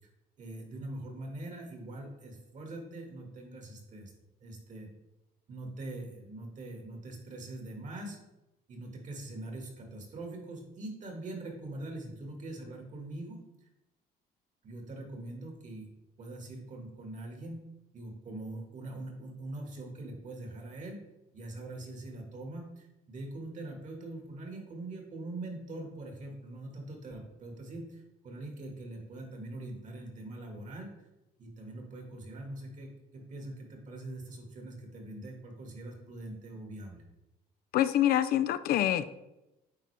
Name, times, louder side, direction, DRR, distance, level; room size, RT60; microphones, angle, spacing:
voice 1, 0.4-4.1 4.4-4.9 5.5-8.2 8.7-13.4 14.6-15.9 16.2-17.6 17.9-21.0 21.3-30.9 31.4-37.0, right 2 dB, 45° right, 2 dB, 1.8 m, -43 dB
voice 2, 37.7-39.1, left 12 dB, 65° left, 12 dB, 0.4 m, -26 dB
9.2 x 3.9 x 3.3 m, 0.94 s
cardioid pair, 110°, 17 cm